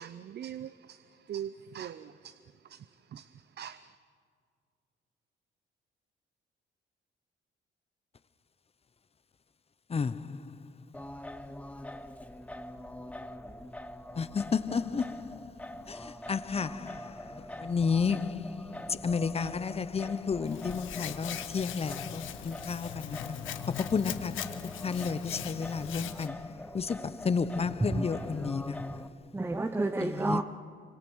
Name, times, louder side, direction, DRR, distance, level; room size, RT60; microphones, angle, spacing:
voice 1, 0.0-4.0, right 9 dB, 55° right, 0.7 m, -43 dB
voice 2, 9.9-10.6 14.2-15.5 15.8-23.4 23.8-29.1 30.0-30.4, left 5 dB, 30° left, 0.8 m, -32 dB
Singing, 10.9-29.1, left 1 dB, 5° left, 1.1 m, -44 dB
Hands, 20.5-26.3, left 11 dB, 80° left, 1.2 m, -41 dB
voice 3, 29.3-30.4, right 2 dB, 10° right, 0.8 m, -30 dB
26.0 x 24.5 x 6.4 m
cardioid pair, 90°, 20 cm